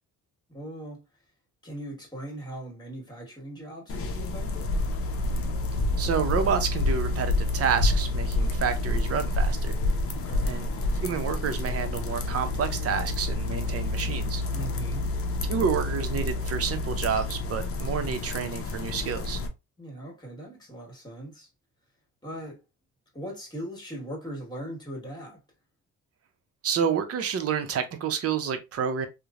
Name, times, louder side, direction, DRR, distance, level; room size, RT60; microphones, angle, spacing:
voice 1, 0.5-1.0 1.6-4.7 10.1-10.6 14.5-15.1 19.8-21.5 22.2-22.6 23.1-25.4, right 1 dB, 15° left, 1.5 m, -39 dB
sound 1, 3.9-19.5, left 2 dB, 50° left, 0.6 m, -28 dB
voice 2, 6.0-9.8 10.4-10.7 11.0-14.4 15.5-19.4 26.6-29.1, right 7 dB, 50° right, 0.7 m, -29 dB
3.0 x 2.1 x 2.4 m
cardioid pair, 90°, 30 cm